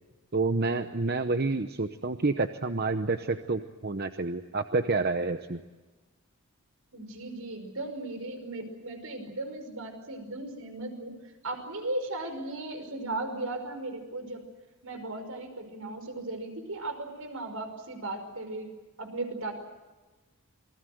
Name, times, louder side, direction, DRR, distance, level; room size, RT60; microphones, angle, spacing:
voice 1, 0.3-5.6, right 3 dB, 45° right, 8 dB, 0.9 m, -28 dB
voice 2, 6.9-11.2 11.4-14.4 14.8-18.7 19.0-19.5, right 2 dB, 75° right, 6 dB, 5.5 m, -36 dB
28.0 x 21.0 x 7.9 m, 1.2 s
head